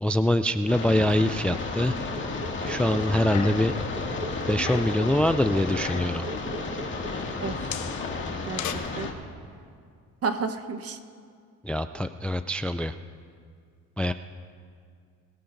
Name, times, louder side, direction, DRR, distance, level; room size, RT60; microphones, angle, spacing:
voice 1, 0.0-2.0 2.7-3.7 4.5-6.3 11.6-12.9 14.0-14.1, left 1 dB, 5° left, 10 dB, 0.4 m, -24 dB
sound 1, 0.7-9.1, left 3 dB, 35° left, 2.2 m, -33 dB
sound 2, 1.4-7.9, right 1 dB, 25° right, 2.0 m, -40 dB
sound 3, 3.0-5.0 5.6-6.2 7.1-8.7, left 9 dB, 65° left, 1.1 m, -38 dB
voice 2, 7.4-7.7 8.5-8.6 9.0-9.1 10.2-11.0, right 5 dB, 45° right, 8 dB, 1.2 m, -31 dB
22.0 x 15.0 x 2.6 m, 2.2 s
cardioid pair, 85°, 32 cm